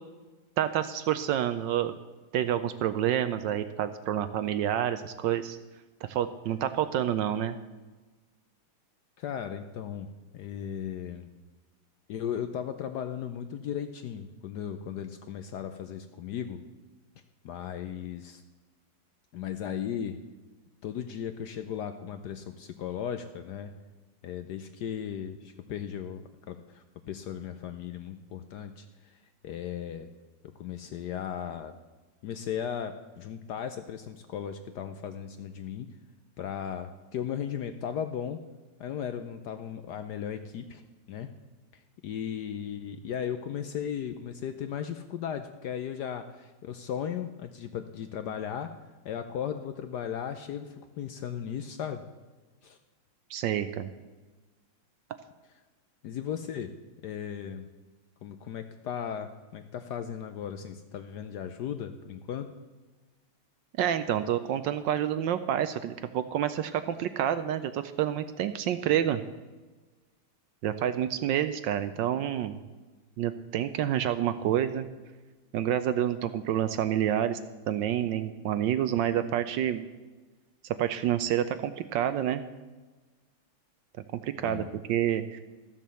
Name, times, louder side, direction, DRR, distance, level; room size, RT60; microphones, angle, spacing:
voice 1, 0.6-1.9 2.3-5.6 6.0-7.6 53.3-53.9 63.8-69.2 70.6-72.6 73.2-74.9 75.5-77.4 77.7-79.9 80.8-82.5 84.2-85.4, right 10 dB, 75° right, 11 dB, 1.1 m, -28 dB
voice 2, 9.2-10.1 10.3-11.3 12.1-16.6 17.4-18.4 19.3-20.2 20.8-23.7 24.2-30.1 30.6-31.8 32.2-35.9 36.4-38.4 38.8-40.8 41.1-41.3 41.7-48.7 49.0-52.0 52.6-52.8 56.0-56.7 57.0-57.7 58.2-62.5 84.4-84.8, left 8 dB, 70° left, 9 dB, 1.0 m, -36 dB
13.5 x 7.4 x 6.8 m, 1.3 s
omnidirectional pair, 2.3 m